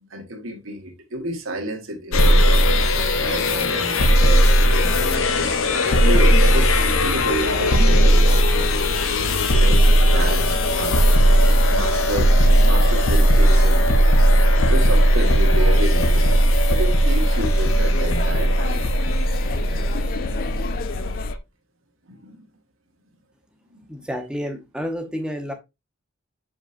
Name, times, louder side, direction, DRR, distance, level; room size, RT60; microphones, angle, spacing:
voice 1, 0.0-2.6 3.2-5.2 5.8-8.8 9.5-9.8 10.1-11.0 11.7-12.4 12.6-13.8 14.7-16.4 16.7-18.8 22.1-22.4 23.7-23.8, right 1 dB, 75° right, 1.5 m, -30 dB
sound 1, 2.1-21.4, equal, 75° left, 0.8 m, -17 dB
sound 2, 7.3-21.3, left 5 dB, 45° left, 0.3 m, -31 dB
voice 2, 23.9-25.5, equal, 5° right, 0.9 m, -30 dB
7.1 x 5.1 x 2.6 m
head